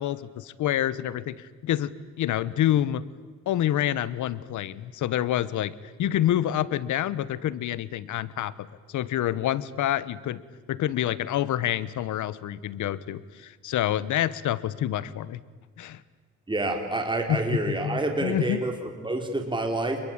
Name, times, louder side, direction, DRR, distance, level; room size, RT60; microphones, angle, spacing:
voice 1, 0.0-3.1 3.5-10.4 10.7-15.4 15.8-16.0 17.3-18.6, left 12 dB, 75° left, 18 dB, 1.1 m, -27 dB
voice 2, 16.5-20.0, right 2 dB, 15° right, 4 dB, 3.9 m, -28 dB
27.5 x 22.0 x 8.9 m, 1.4 s
cardioid pair, 90°, 30 cm